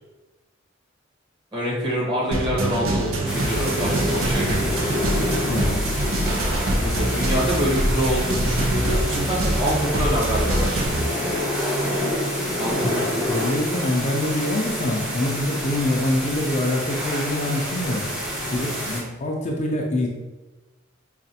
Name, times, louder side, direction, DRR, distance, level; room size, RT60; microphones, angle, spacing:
voice 1, 1.5-4.9 6.7-11.0 12.6-13.0, equal, 25° right, -5 dB, 1.2 m, -26 dB
sound 1, 2.3-11.0, right 1 dB, 85° right, 0.6 m, -24 dB
sound 2, 3.2-19.0, equal, 5° right, 0.8 m, -28 dB
voice 2, 5.5-5.8 13.3-18.0 18.5-20.1, left 1 dB, 35° left, 0 dB, 0.4 m, -25 dB
5.0 x 2.4 x 2.7 m, 1.1 s
head